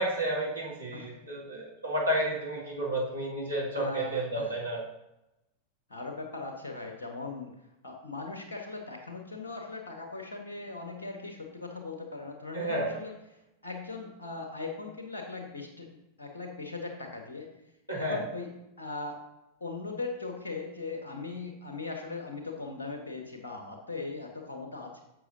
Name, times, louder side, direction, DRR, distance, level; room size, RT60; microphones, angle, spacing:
voice 1, 0.0-4.8 12.5-12.9 17.9-18.2, right 1 dB, 90° right, -5 dB, 2.5 m, -31 dB
voice 2, 3.7-4.5 5.9-7.5 7.8-13.1 13.6-17.5 18.0-18.5 18.8-19.2 19.6-25.0, left 3 dB, 70° left, 2 dB, 1.2 m, -39 dB
11.0 x 7.2 x 2.7 m, 0.91 s
figure-of-eight pair, 90°, 0 cm